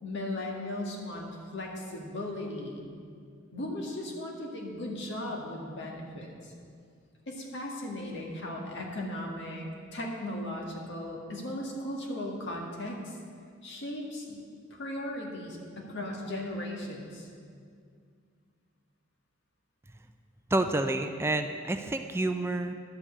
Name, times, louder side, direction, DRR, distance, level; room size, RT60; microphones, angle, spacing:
voice 1, 0.0-2.9 3.5-6.5 7.3-13.2 13.6-14.4 14.7-17.3, left 1 dB, 65° left, -1 dB, 1.9 m, -37 dB
voice 2, 20.5-22.7, right 2 dB, 15° right, 7 dB, 0.4 m, -29 dB
11.5 x 5.4 x 8.3 m, 2.2 s
head